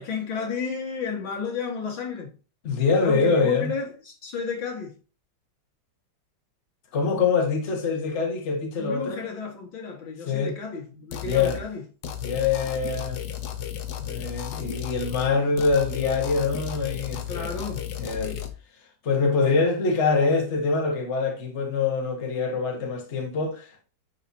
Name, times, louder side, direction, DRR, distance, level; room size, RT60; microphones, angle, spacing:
voice 1, 0.0-2.3 3.0-4.9 8.8-11.8 17.3-17.9, left 5 dB, 80° left, 2.5 m, -32 dB
voice 2, 2.6-3.7 6.9-9.2 10.3-10.5 11.2-11.6 12.2-13.2 14.0-17.5 18.0-18.3 19.0-23.8, left 4 dB, 40° left, 1.6 m, -24 dB
sound 1, 11.1-11.6 12.0-15.3 15.6-18.5, left 10 dB, 60° left, 1.3 m, -34 dB
9.7 x 4.9 x 2.8 m
omnidirectional pair, 2.1 m